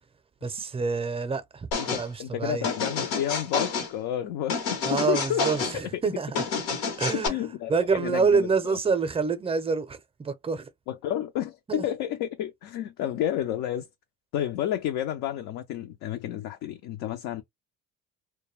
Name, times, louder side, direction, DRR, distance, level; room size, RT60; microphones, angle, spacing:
voice 1, 0.4-1.7 2.0-2.6 4.8-6.4 7.0-10.7 11.7-11.8, right 5 dB, 15° right, 0.5 m, -27 dB
sound 1, 1.7-2.1 2.6-3.9 4.5-5.8 6.4-7.3, left 5 dB, 90° left, 1.0 m, -29 dB
voice 2, 1.8-5.5 5.9-6.0 7.1-8.8 10.9-13.9 14.3-17.4, left 11 dB, 65° left, 0.5 m, -31 dB
2.2 x 2.2 x 3.1 m
supercardioid pair, 85°, 34 cm